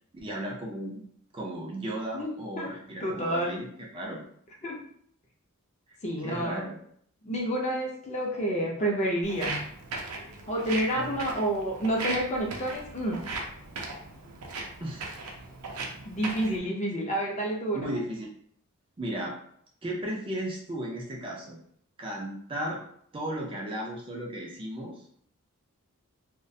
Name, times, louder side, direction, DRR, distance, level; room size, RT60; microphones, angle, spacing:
voice 1, 0.1-1.0 1.3-4.2 5.9-6.0 6.2-6.8 10.9-11.2 14.8-15.1 17.7-18.3 19.0-19.3 19.8-21.6 22.0-22.8 23.1-25.2, right 1 dB, 25° right, -2 dB, 0.4 m, -35 dB
voice 2, 3.0-3.6 4.6-4.8 6.0-6.7 7.2-9.6 10.5-13.2 16.0-17.9, right 1 dB, 30° left, -1 dB, 0.5 m, -29 dB
Walk footsteps, 9.2-16.6, right 3 dB, 85° right, 0.5 m, -38 dB
2.3 x 2.1 x 2.6 m, 0.64 s
head